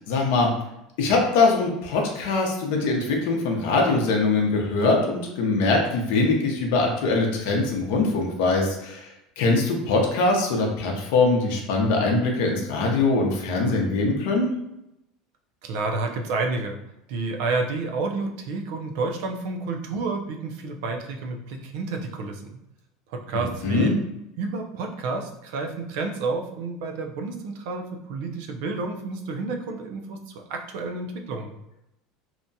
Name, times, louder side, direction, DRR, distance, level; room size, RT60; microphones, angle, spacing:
voice 1, 0.1-0.5 1.0-9.1 9.4-14.5 23.3-23.9, left 3 dB, 70° left, 1 dB, 0.6 m, -22 dB
voice 2, 15.6-16.8 17.1-22.5 23.1-24.0 24.4-31.5, right 3 dB, 65° right, 3 dB, 0.4 m, -30 dB
2.7 x 2.2 x 2.6 m, 0.85 s
cardioid pair, 155°, 0 cm